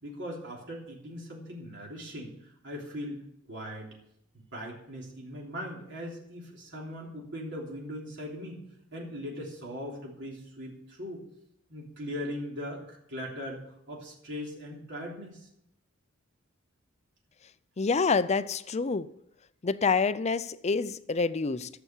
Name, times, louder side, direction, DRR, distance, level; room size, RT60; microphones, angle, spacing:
voice 1, 0.0-3.2 3.5-3.9 4.3-8.6 8.9-11.2 11.7-15.5, equal, 60° right, 3.3 m, -40 dB
voice 2, 17.8-19.1 19.6-21.7, left 4 dB, 30° left, 0.5 m, -27 dB
14.0 x 6.9 x 7.3 m
head